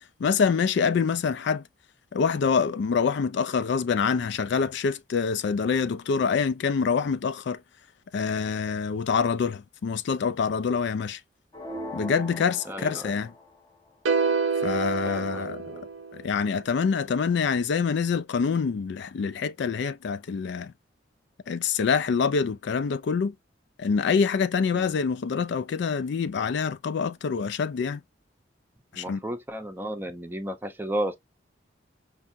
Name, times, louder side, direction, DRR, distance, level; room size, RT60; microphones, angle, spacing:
voice 1, 0.2-1.6 2.1-7.6 8.1-11.2 11.9-13.3 14.6-15.6 16.1-20.7 21.5-23.3 23.8-28.0 28.9-29.2, left 5 dB, 65° left, 0.4 m, -26 dB
sound 1, 11.5-13.6, equal, 25° left, 0.9 m, -39 dB
voice 2, 12.7-13.2 15.1-15.8 24.7-25.0 28.9-31.2, right 1 dB, 10° right, 0.6 m, -33 dB
sound 2, 14.1-16.4, right 5 dB, 85° right, 0.5 m, -27 dB
5.5 x 2.4 x 2.5 m
head